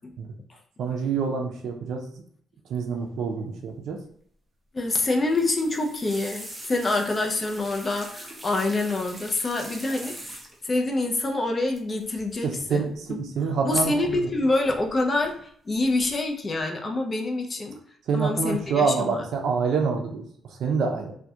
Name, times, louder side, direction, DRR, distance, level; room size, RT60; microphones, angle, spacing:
voice 1, 0.8-2.0 2.7-4.0 12.4-14.3 18.1-20.2 20.5-21.1, right 5 dB, 70° right, 2 dB, 0.4 m, -26 dB
voice 2, 4.7-10.1 10.6-13.2 13.6-17.8 18.1-19.2, left 2 dB, 30° left, 2 dB, 0.4 m, -26 dB
sound 1, 5.2-10.8 11.7-12.0 12.3-12.6 13.8-14.4 14.7-15.3 15.7-16.1 16.5-16.6, right 1 dB, 15° right, 0.6 m, -42 dB
2.3 x 2.1 x 2.7 m, 0.63 s
cardioid pair, 90°, 0 cm